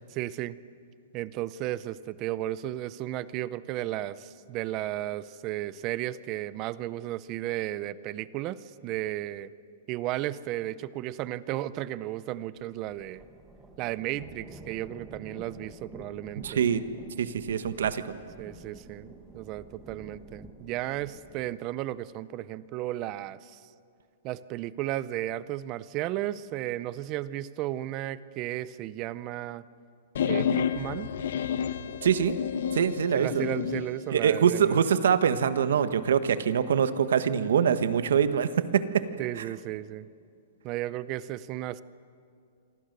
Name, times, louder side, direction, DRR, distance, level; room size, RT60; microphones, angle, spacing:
voice 1, 0.1-0.6 1.1-9.5 9.9-13.2 13.8-16.7 18.4-23.6 24.2-29.6 30.3-31.1 33.1-34.8 39.2-40.1 40.6-41.8, right 14 dB, 25° right, 17 dB, 0.5 m, -34 dB
sound 1, 12.6-21.6, right 2 dB, 5° right, 1.7 m, -49 dB
voice 2, 16.4-16.8 17.2-18.0 32.0-32.3 32.7-33.4 34.1-39.0, right 8 dB, 70° right, 12 dB, 1.4 m, -24 dB
sound 2, 30.2-33.9, left 7 dB, 55° left, 1.0 m, -30 dB
27.5 x 25.0 x 6.7 m, 2.4 s
hypercardioid pair, 180°, 0 cm